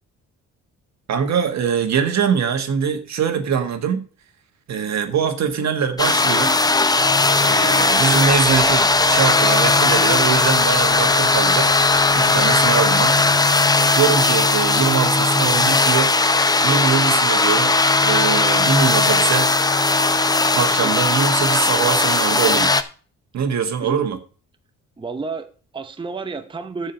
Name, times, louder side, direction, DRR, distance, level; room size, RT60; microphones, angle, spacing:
voice 1, 1.1-4.1 4.7-6.5 7.4-11.7 12.1-13.2 13.9-16.1 16.6-17.7 18.0-19.5 20.5-22.7 23.3-24.2, right 7 dB, 65° right, 1.7 m, -22 dB
sound 1, 6.0-22.8, left 3 dB, 15° left, 0.7 m, -17 dB
voice 2, 20.8-21.1 23.8-24.0 25.0-26.9, right 4 dB, 15° right, 0.8 m, -31 dB
14.0 x 4.9 x 4.5 m
cardioid pair, 90°, 30 cm